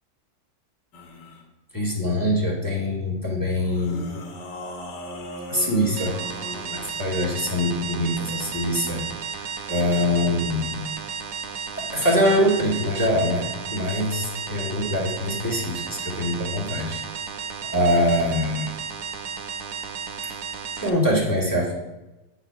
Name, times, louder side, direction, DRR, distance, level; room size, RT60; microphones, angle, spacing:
sound 1, 0.9-1.4 3.5-7.0, left 1 dB, 80° left, 1.7 m, -37 dB
voice 1, 1.7-4.1 5.5-6.1 6.7-9.0 9.4-10.8 11.8-13.4 13.7-17.0 17.7-18.7 20.2-20.3 20.8-21.7, left 1 dB, 10° left, -5 dB, 1.6 m, -23 dB
sound 2, 6.0-20.9, right 6 dB, 70° right, 1.1 m, -33 dB
8.8 x 4.8 x 4.6 m, 1.0 s
omnidirectional pair, 1.8 m